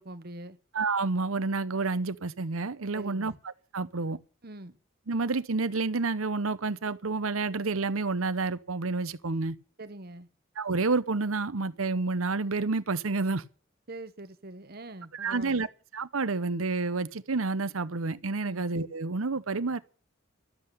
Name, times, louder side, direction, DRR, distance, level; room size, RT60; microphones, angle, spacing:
voice 1, 0.0-0.6 2.9-3.4 4.4-4.8 9.8-10.3 13.9-15.7 18.4-18.6, right 2 dB, 45° right, 1.1 m, -43 dB
voice 2, 0.7-3.3 3.7-4.2 5.1-9.6 10.6-13.4 15.1-15.7 15.9-19.8, right 3 dB, 90° right, 0.9 m, -29 dB
12.5 x 7.9 x 10.0 m
head